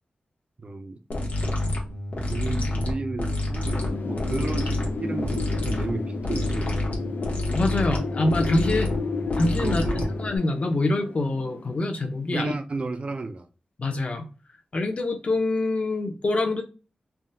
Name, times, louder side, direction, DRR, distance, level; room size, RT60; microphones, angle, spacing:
voice 1, 0.6-1.0 2.3-7.1 9.6-10.1 12.3-13.5, right 3 dB, 40° right, 0.4 m, -33 dB
sound 1, 1.1-10.4, left 1 dB, 60° left, 1.0 m, -28 dB
Wind, 3.7-12.4, left 5 dB, 85° left, 0.5 m, -33 dB
voice 2, 7.5-9.0 9.4-9.8 10.2-12.5 13.8-14.3 14.7-16.6, left 2 dB, 45° left, 0.6 m, -25 dB
3.5 x 2.2 x 2.7 m
wide cardioid pair, 125°, 3 cm